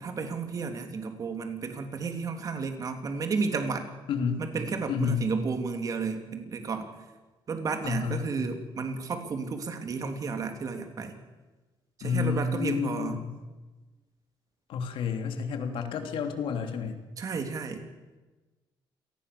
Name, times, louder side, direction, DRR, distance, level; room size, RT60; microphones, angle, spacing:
voice 1, 0.0-3.9 4.4-6.9 7.5-11.2 12.0-13.2 17.2-17.8, right 4 dB, 40° right, 6 dB, 3.2 m, -32 dB
voice 2, 4.1-4.4 4.9-5.3 7.8-8.3 12.0-13.3 14.7-17.0, left 6 dB, 75° left, 6 dB, 3.1 m, -30 dB
27.5 x 19.5 x 6.9 m, 1.2 s
cardioid pair, 145°, 9 cm